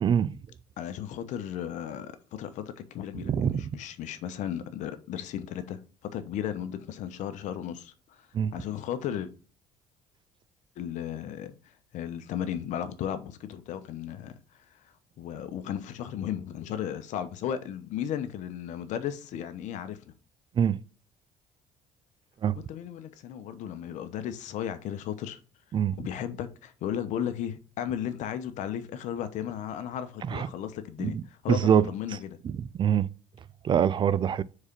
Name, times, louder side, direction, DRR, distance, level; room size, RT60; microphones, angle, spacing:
voice 1, 0.0-0.4 3.2-3.6 8.3-8.5 20.6-20.8 22.4-22.6 25.7-26.0 30.2-30.5 31.0-31.2 31.5-31.8 32.4-33.1 33.6-34.4, right 8 dB, 40° right, 0.4 m, -24 dB
voice 2, 0.8-8.3 8.5-9.3 10.8-11.5 11.9-14.4 15.2-20.0 22.5-25.4 26.0-32.4, left 9 dB, 70° left, 0.9 m, -35 dB
4.7 x 4.3 x 5.3 m
cardioid pair, 95°, 13 cm